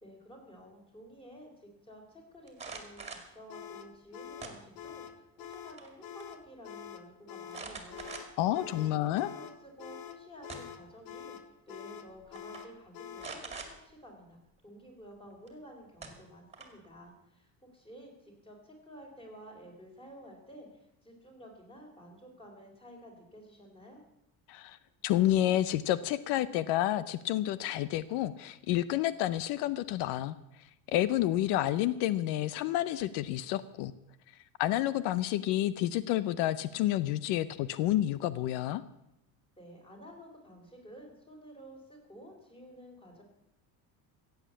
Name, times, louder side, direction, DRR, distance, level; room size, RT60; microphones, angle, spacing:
voice 1, 0.0-24.0 39.6-43.2, equal, 15° left, 1 dB, 3.8 m, -52 dB
sound 1, 2.5-3.3 4.4-5.0 5.4-5.9 6.2-6.3 7.5-8.5 9.1-9.2 10.2-10.9 11.9-12.1 12.4-12.6 13.2-13.7 15.5-15.6 16.0-16.9, right 4 dB, 15° right, 2.2 m, -44 dB
sound 2, 3.5-13.4, left 9 dB, 60° left, 1.2 m, -46 dB
voice 2, 8.4-9.3 24.5-24.8 25.0-30.4 30.9-33.9 34.6-38.8, left 13 dB, 85° left, 16 dB, 0.7 m, -29 dB
15.5 x 8.1 x 8.4 m, 0.83 s
cardioid pair, 155°, 39 cm